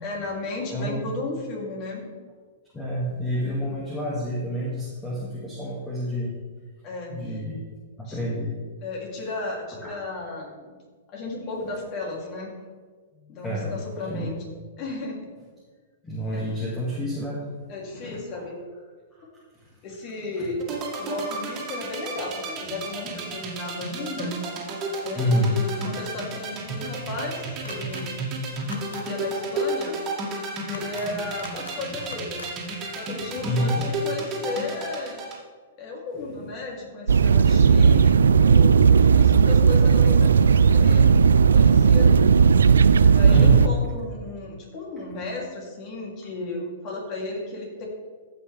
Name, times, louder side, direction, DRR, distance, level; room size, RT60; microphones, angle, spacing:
voice 1, 0.0-2.1 3.4-3.8 6.8-7.1 8.0-8.2 8.8-10.8 11.1-12.5 13.2-14.4 14.8-15.3 16.3-16.4 17.7-18.6 19.8-24.3 25.0-28.1 28.9-30.0 30.6-32.5 32.9-35.2 35.8-41.1 41.5-42.3 43.0-47.9, left 2 dB, 40° left, -2 dB, 3.0 m, -34 dB
voice 2, 0.7-1.1 2.7-6.3 7.1-7.6 8.0-8.6 9.8-9.9 13.4-13.7 14.0-14.3 16.0-17.4 20.4-20.5 23.4-23.5 25.1-25.6 33.4-33.8 43.3-43.7, equal, 15° left, -6 dB, 2.1 m, -28 dB
sound 1, 20.6-35.4, right 3 dB, 30° right, 2.3 m, -32 dB
sound 2, 27.6-28.0 28.6-29.0 30.6-31.1 31.4-31.8 32.0-32.5, left 3 dB, 85° left, 1.1 m, -41 dB
sound 3, 37.1-43.7, right 6 dB, 80° right, 0.3 m, -16 dB
15.0 x 5.9 x 3.5 m, 1.5 s
hypercardioid pair, 115°, 0 cm